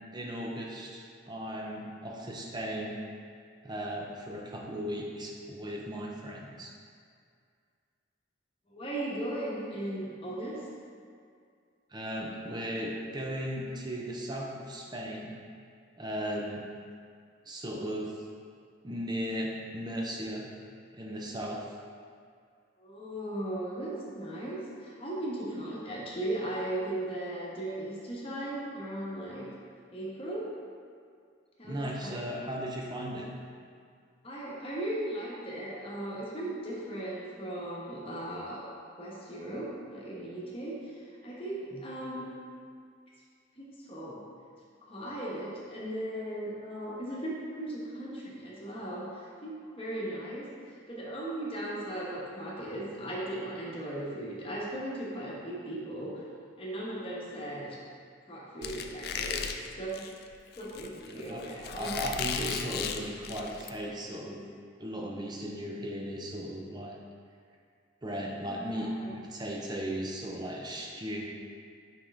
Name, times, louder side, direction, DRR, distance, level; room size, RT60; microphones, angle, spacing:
voice 1, 0.1-3.0 3.6-6.7 11.9-15.4 16.0-16.7 17.5-18.2 18.8-20.5 20.9-21.7 31.6-33.3 41.7-41.8 61.0-64.4 64.8-67.0 68.0-71.3, equal, 20° right, -1 dB, 0.6 m, -36 dB
voice 2, 8.7-10.7 22.8-29.5 29.9-30.5 31.6-32.2 34.2-38.7 39.0-42.3 43.6-44.2 44.8-56.2 56.6-57.8 58.3-59.4 59.7-60.1 60.6-61.9 68.4-69.1, right 1 dB, 30° left, -6 dB, 1.1 m, -37 dB
Squeak, 58.6-63.7, left 6 dB, 50° left, 0.3 m, -36 dB
5.4 x 5.3 x 3.5 m, 2.2 s
head